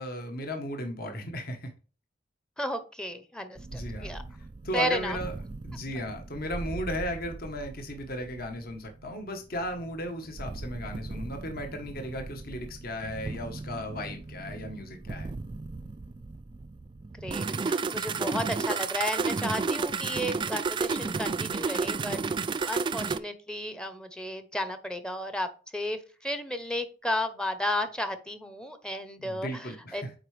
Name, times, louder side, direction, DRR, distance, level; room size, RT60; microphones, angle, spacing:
voice 1, 0.0-1.7 3.7-4.1 4.6-5.3 5.6-15.3 18.1-18.4 29.2-30.1, equal, 55° left, 1.2 m, -36 dB
voice 2, 2.6-4.2 4.7-5.2 17.2-22.2 22.6-30.0, left 1 dB, 5° left, 0.7 m, -33 dB
sound 1, 3.6-23.2, right 4 dB, 25° right, 0.3 m, -34 dB
7.8 x 4.6 x 3.3 m
head